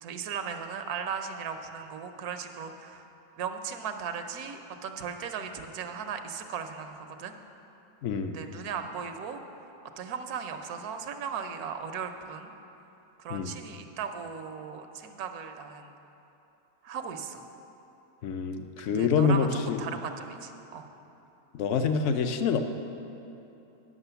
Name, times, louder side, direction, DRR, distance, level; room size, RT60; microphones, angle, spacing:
voice 1, 0.0-3.0 3.4-7.3 8.3-9.4 10.0-12.5 13.2-15.9 16.8-17.5 18.8-20.9, right 6 dB, 85° right, 7 dB, 1.2 m, -37 dB
voice 2, 8.0-8.4 13.3-13.5 18.2-19.8 21.5-22.6, left 5 dB, 65° left, 8 dB, 0.8 m, -26 dB
9.8 x 6.2 x 6.8 m, 3.0 s
omnidirectional pair, 1.6 m